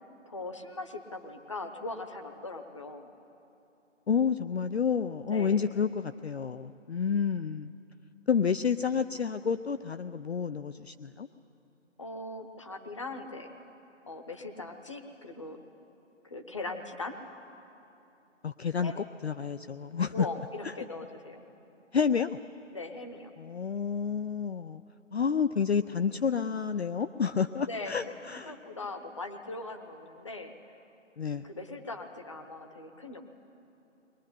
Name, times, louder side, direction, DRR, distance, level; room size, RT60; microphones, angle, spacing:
voice 1, 0.3-3.1 5.3-5.8 12.0-13.5 14.1-15.6 16.2-17.2 18.8-19.0 20.1-21.4 22.7-23.3 27.7-28.1 28.5-30.5 31.4-33.3, left 2 dB, 25° left, 6 dB, 1.0 m, -40 dB
voice 2, 4.1-7.7 8.3-11.3 18.4-20.3 20.6-20.7 21.9-22.4 23.4-24.8 25.1-28.6 31.2-31.4, left 6 dB, 55° left, 10 dB, 0.5 m, -29 dB
22.0 x 18.5 x 9.9 m, 3.0 s
hypercardioid pair, 175°, 38 cm